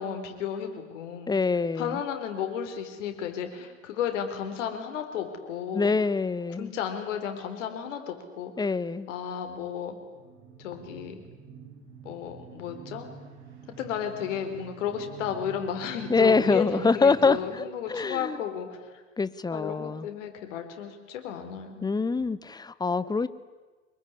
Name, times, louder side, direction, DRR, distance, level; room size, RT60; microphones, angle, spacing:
voice 1, 0.0-1.3 1.7-5.9 6.6-8.7 9.1-10.0 10.6-11.2 12.0-13.1 13.8-19.0 19.5-21.9, left 8 dB, 65° left, 6 dB, 4.2 m, -33 dB
voice 2, 1.3-2.0 5.7-6.7 8.6-9.1 16.1-18.4 19.2-20.1 21.8-23.3, left 4 dB, 10° left, 16 dB, 1.0 m, -25 dB
sound 1, 10.1-17.4, right 6 dB, 55° right, 7.2 m, -47 dB
25.0 x 22.5 x 9.8 m, 1.3 s
figure-of-eight pair, 80°, 39 cm